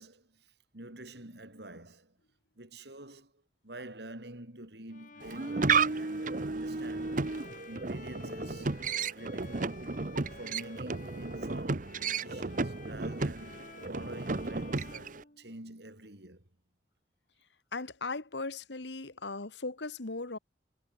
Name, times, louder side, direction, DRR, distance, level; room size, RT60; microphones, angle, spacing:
voice 1, 0.0-2.1 2.6-7.2 7.7-8.8 9.1-9.8 10.3-16.4, right 1 dB, 65° right, 4.5 m, -47 dB
Bowed string instrument, 4.9-15.9, left 3 dB, 50° left, 6.7 m, -52 dB
sound 1, 5.2-15.2, right 4 dB, 50° right, 1.0 m, -33 dB
voice 2, 17.7-20.4, left 3 dB, 80° left, 1.7 m, -38 dB
head